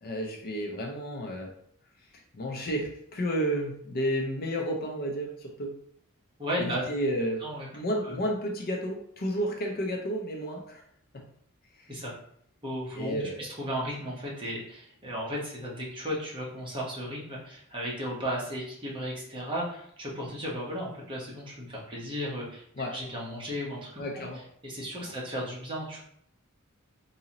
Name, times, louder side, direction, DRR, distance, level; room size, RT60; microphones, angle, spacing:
voice 1, 0.0-1.5 2.1-5.8 6.6-7.5 7.7-10.8 11.1-11.2 11.8-11.9 12.9-13.5 22.8-22.9 24.0-24.4 25.0-25.1, equal, 45° left, 1 dB, 0.5 m, -32 dB
voice 2, 6.4-6.8 7.4-7.7 8.0-8.2 11.9-12.1 12.6-22.6 22.9-24.0 24.6-26.0, equal, 25° right, -5 dB, 1.0 m, -35 dB
3.8 x 2.7 x 2.9 m, 0.68 s
head